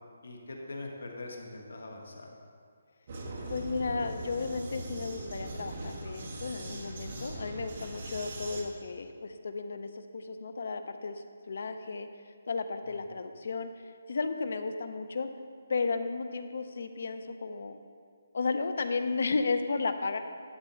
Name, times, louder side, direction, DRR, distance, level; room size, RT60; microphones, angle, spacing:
voice 1, 0.2-2.3, left 2 dB, 80° left, 1 dB, 1.6 m, -42 dB
Vehicle, 3.1-8.6, right 2 dB, 35° right, 1.2 m, -40 dB
voice 2, 3.5-11.2 11.5-12.1 12.5-13.7 14.1-15.3 15.7-17.8 18.3-20.2, left 4 dB, 55° left, 9 dB, 0.5 m, -33 dB
11.5 x 4.3 x 6.3 m, 2.1 s
hypercardioid pair, 175°, 0 cm